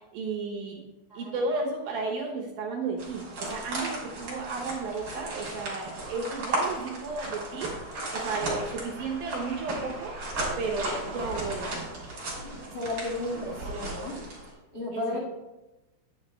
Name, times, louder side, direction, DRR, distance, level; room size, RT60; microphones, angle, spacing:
voice 1, 0.1-0.8 1.2-7.7 8.1-10.1 10.6-11.8 14.9-15.0, right 3 dB, 70° right, -1 dB, 2.3 m, -33 dB
voice 2, 1.1-1.4 12.7-14.2 14.7-15.2, left 2 dB, 90° left, -5 dB, 0.8 m, -33 dB
sound 1, 3.0-14.5, right 2 dB, 30° right, 3.1 m, -35 dB
10.5 x 7.7 x 3.2 m, 1.0 s
omnidirectional pair, 5.4 m